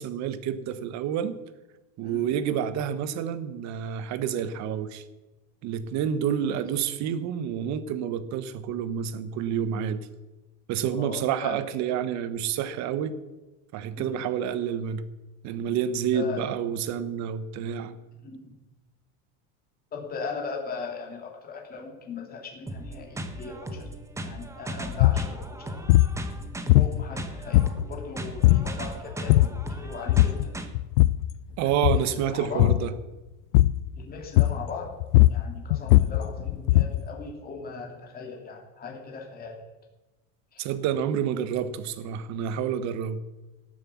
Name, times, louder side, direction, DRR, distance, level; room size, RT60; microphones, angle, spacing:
voice 1, 0.0-1.3 2.0-5.0 5.6-10.1 10.7-13.1 13.7-15.0 15.4-17.9 31.6-32.9 40.6-43.2, right 8 dB, 45° right, 13 dB, 1.2 m, -29 dB
voice 2, 10.8-11.6 14.0-14.3 16.1-16.4 18.2-18.5 19.9-23.9 24.2-25.9 26.7-30.6 31.6-32.7 33.9-34.9 35.3-39.6 40.5-40.6, left 4 dB, 20° left, 1 dB, 2.8 m, -39 dB
sound 1, 22.7-30.7, right 1 dB, 5° right, 1.0 m, -37 dB
sound 2, 24.9-25.3 25.9-26.2 26.7-27.2 27.5-28.0 28.4-28.7 29.1-29.7 30.1-30.5 30.7-31.3 31.7-32.1 32.6-32.9 33.5-33.9 34.4-34.7 35.0-37.1, left 17 dB, 85° left, 0.6 m, -19 dB
17.5 x 7.8 x 7.1 m, 1.1 s
supercardioid pair, 145°, 40 cm